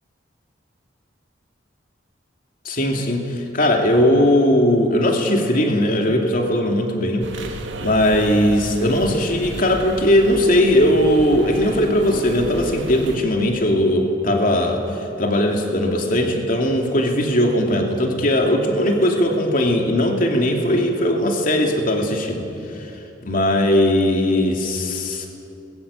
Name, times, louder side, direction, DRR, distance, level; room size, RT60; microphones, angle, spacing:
voice 1, 2.6-7.3 7.8-14.8 15.2-22.4 23.2-25.3, left 1 dB, 50° left, 2 dB, 2.9 m, -19 dB
sound 1, 7.2-13.2, right 1 dB, 90° right, 2.0 m, -33 dB
26.0 x 21.5 x 8.4 m, 2.9 s
head